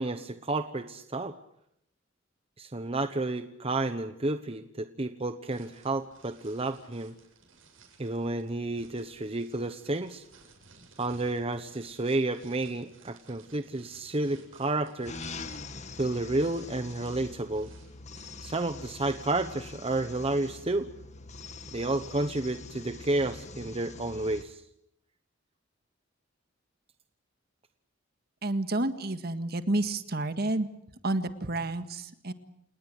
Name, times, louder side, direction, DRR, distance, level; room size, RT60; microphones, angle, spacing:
voice 1, 0.0-1.3 2.6-7.1 8.0-10.2 11.0-15.1 16.0-17.7 18.4-20.9 21.7-24.6, right 2 dB, 30° right, 9 dB, 1.0 m, -31 dB
sound 1, 5.5-18.8, right 4 dB, 85° right, 7.8 m, -58 dB
sound 2, 15.1-24.4, left 3 dB, 35° left, 1.6 m, -44 dB
voice 2, 28.4-30.7 31.0-32.3, right 2 dB, 55° right, 10 dB, 1.8 m, -30 dB
29.0 x 19.5 x 8.0 m, 0.76 s
head